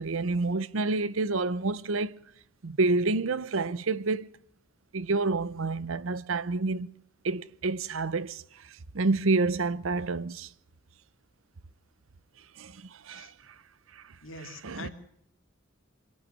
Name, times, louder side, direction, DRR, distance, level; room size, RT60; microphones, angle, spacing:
voice 1, 0.0-2.2 2.6-4.3 4.9-6.9 7.2-8.4 8.9-10.5 12.6-13.3 13.9-14.0 14.6-14.9, right 3 dB, 70° right, 0.7 m, -28 dB
voice 2, 14.2-14.9, left 3 dB, 65° left, 3.0 m, -44 dB
24.5 x 12.0 x 9.7 m
head